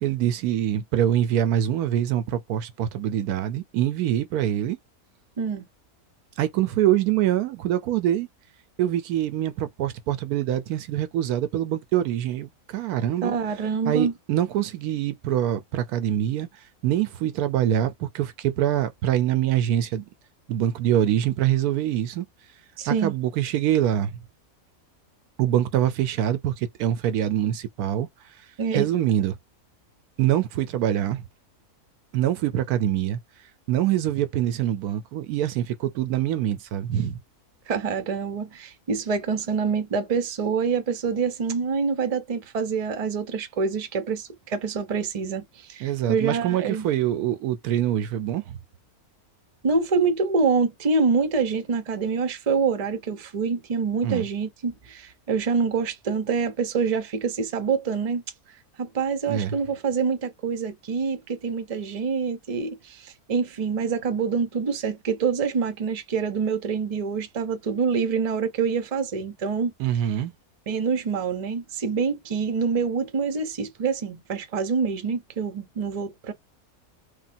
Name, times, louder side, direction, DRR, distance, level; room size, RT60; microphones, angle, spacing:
voice 1, 0.0-4.8 6.4-8.3 8.8-13.3 13.8-16.5 16.8-20.0 20.5-22.3 22.9-24.2 25.4-28.1 28.7-29.4 30.2-31.2 32.1-33.2 33.7-37.2 45.8-48.6 54.0-54.2 59.3-59.6 69.8-70.3, right 11 dB, 85° right, 1.1 m, -24 dB
voice 2, 13.2-14.1 22.8-23.1 28.6-28.9 37.7-46.9 49.6-58.2 58.8-69.7 70.7-76.3, right 5 dB, 35° right, 0.6 m, -26 dB
3.5 x 2.2 x 2.6 m
omnidirectional pair, 1.6 m